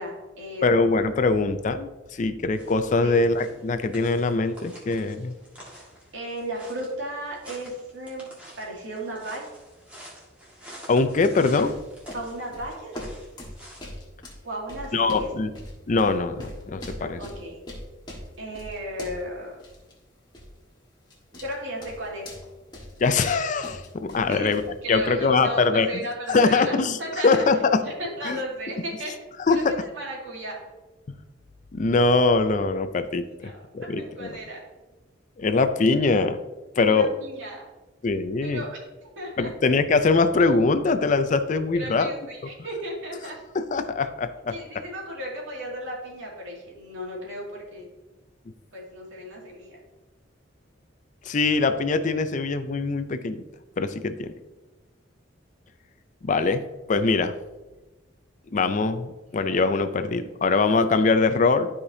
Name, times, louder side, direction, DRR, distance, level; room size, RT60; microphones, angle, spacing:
voice 1, 0.0-0.9 3.0-3.3 6.1-8.3 8.6-9.4 12.1-13.0 14.4-15.3 17.0-17.6 18.4-19.6 21.4-22.3 24.3-24.6 24.8-27.5 27.8-29.2 29.5-30.6 33.3-34.6 36.8-37.6 38.4-39.5 41.7-43.4 44.5-47.9 48.7-49.8, equal, 80° right, -2 dB, 2.3 m, -35 dB
voice 2, 0.6-5.3 10.9-11.8 14.9-15.5 15.9-17.2 23.0-24.6 24.9-25.9 26.3-27.0 27.2-27.8 28.2-28.4 29.5-29.8 31.7-34.4 35.4-36.4 36.8-37.1 38.0-38.6 39.4-42.1 43.5-44.6 51.2-53.4 53.8-54.3 56.2-56.6 56.9-57.3 58.5-61.7, left 3 dB, 40° left, 10 dB, 0.4 m, -22 dB
sound 1, 2.5-13.9, equal, 5° right, 1.8 m, -48 dB
sound 2, 11.5-19.3 19.6-19.9 20.3-20.6 21.1-21.6 21.8-24.8, left 1 dB, 20° left, 1.5 m, -41 dB
12.5 x 5.0 x 2.7 m, 1.1 s
head